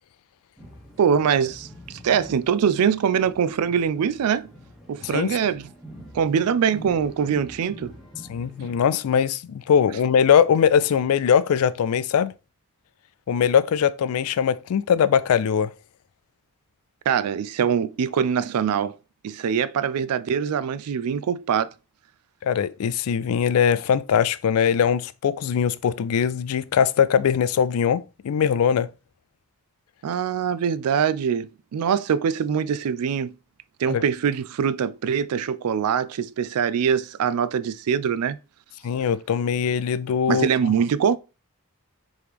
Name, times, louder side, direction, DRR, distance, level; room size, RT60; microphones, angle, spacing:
sound 1, 0.6-8.8, equal, ahead, 1.1 m, -45 dB
voice 1, 1.0-4.5 4.9-5.7 6.1-7.9 17.1-19.0 19.2-21.7 30.0-33.3 33.8-38.4 40.3-41.2, right 7 dB, 90° right, 0.4 m, -23 dB
voice 2, 8.3-12.3 13.3-15.7 22.4-28.9 33.9-34.0 38.8-40.7, left 7 dB, 80° left, 0.3 m, -21 dB
4.9 x 3.1 x 3.4 m
head